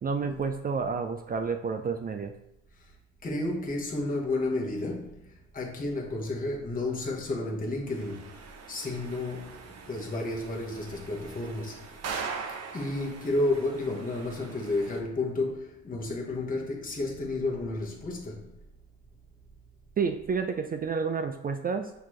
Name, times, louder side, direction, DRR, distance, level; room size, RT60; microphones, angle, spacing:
voice 1, 0.0-2.3 20.0-21.9, right 5 dB, 25° right, 0.4 m, -30 dB
voice 2, 3.2-8.4 8.7-12.0 12.7-18.5, left 2 dB, 25° left, 1.1 m, -32 dB
sound 1, 7.9-15.0, right 5 dB, 45° right, 0.8 m, -42 dB
5.9 x 2.8 x 3.1 m
supercardioid pair, 75°, 35 cm